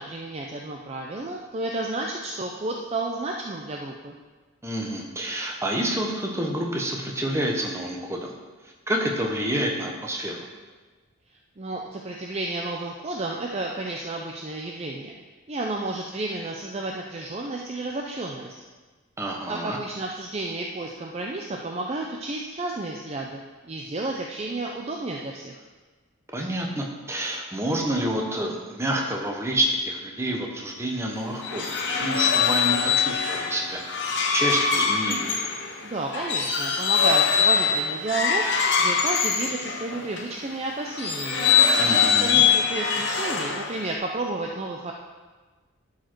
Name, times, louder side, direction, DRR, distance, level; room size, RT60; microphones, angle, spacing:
voice 1, 0.0-4.1 11.6-15.1 15.5-18.5 19.5-25.6 35.8-38.4 38.8-41.5 42.0-44.9, right 2 dB, 30° right, 1 dB, 0.5 m, -31 dB
voice 2, 4.6-8.3 8.9-10.5 19.2-19.8 26.3-31.7 32.0-35.3 41.8-42.4, right 1 dB, 15° right, 0 dB, 1.0 m, -28 dB
sound 1, 31.2-40.3 40.9-43.9, left 6 dB, 55° left, 1.0 m, -23 dB
12.0 x 4.8 x 4.5 m, 1.3 s
head